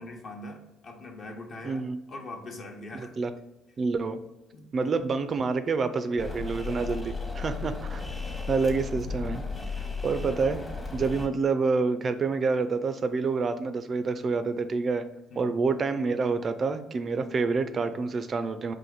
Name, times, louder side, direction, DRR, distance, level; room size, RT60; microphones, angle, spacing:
voice 1, 0.0-3.1 4.5-4.9 8.1-8.3 15.3-15.5, left 2 dB, 50° left, 2 dB, 0.9 m, -43 dB
voice 2, 1.6-2.0 3.0-3.3 3.8-4.2 4.7-8.2 8.5-9.4 10.0-10.6 10.9-15.0 15.4-18.7, right 4 dB, 40° right, 10 dB, 0.3 m, -27 dB
sound 1, 6.2-11.3, left 4 dB, 20° left, 0.9 m, -35 dB
4.2 x 2.5 x 3.8 m, 0.97 s
hypercardioid pair, 60°, 0 cm